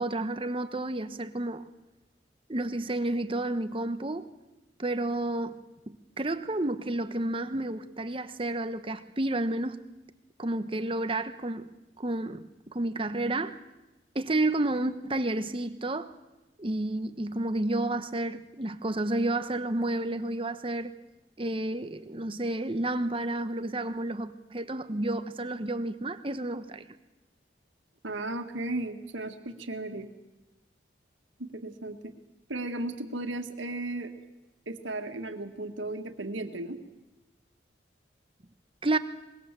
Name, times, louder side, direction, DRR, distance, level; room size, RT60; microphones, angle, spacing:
voice 1, 0.0-1.6 2.5-4.3 4.8-5.6 5.9-9.8 10.4-11.7 12.0-13.6 14.1-16.1 16.6-20.9 21.4-26.8 38.8-39.0, right 2 dB, 30° right, 1.0 m, -31 dB
voice 2, 28.0-30.1 31.4-32.1 32.5-34.1 34.7-36.8, right 2 dB, 90° right, 1.9 m, -35 dB
23.5 x 21.0 x 7.5 m
head